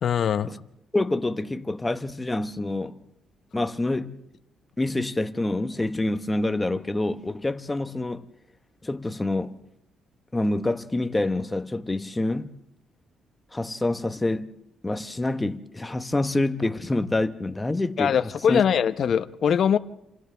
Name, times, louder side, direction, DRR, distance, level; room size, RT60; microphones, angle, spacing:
voice 1, 0.0-0.5 18.0-19.8, left 8 dB, 55° left, 0.8 m, -22 dB
voice 2, 0.9-3.0 3.5-4.1 4.8-8.3 8.8-9.6 10.3-12.5 13.5-14.5 14.8-18.6, left 2 dB, 15° left, 0.9 m, -27 dB
29.5 x 27.5 x 3.4 m
cardioid pair, 125°, 0 cm